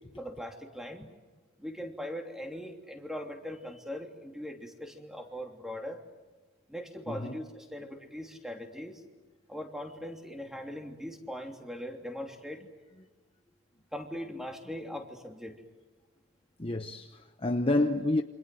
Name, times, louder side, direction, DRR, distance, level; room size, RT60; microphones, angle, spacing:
voice 1, 0.2-1.1 1.6-6.0 6.7-9.0 9.5-12.6 13.9-15.6, equal, ahead, 3.0 m, -40 dB
voice 2, 16.6-18.2, left 2 dB, 25° left, 0.9 m, -29 dB
28.5 x 26.5 x 7.8 m
head